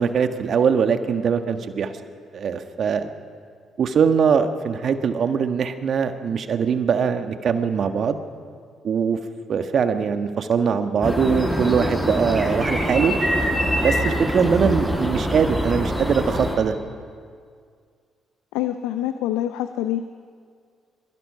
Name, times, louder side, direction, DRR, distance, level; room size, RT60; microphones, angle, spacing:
voice 1, 0.0-1.9 2.3-3.1 3.8-8.2 8.8-9.2 9.5-13.1 13.8-16.7, right 6 dB, 60° right, 8 dB, 1.5 m, -22 dB
sound 1, 11.0-16.6, equal, 5° left, 6.9 m, -24 dB
voice 2, 18.5-20.0, left 12 dB, 80° left, 10 dB, 0.7 m, -25 dB
23.5 x 22.5 x 5.7 m, 2.1 s
hypercardioid pair, 45°, 0 cm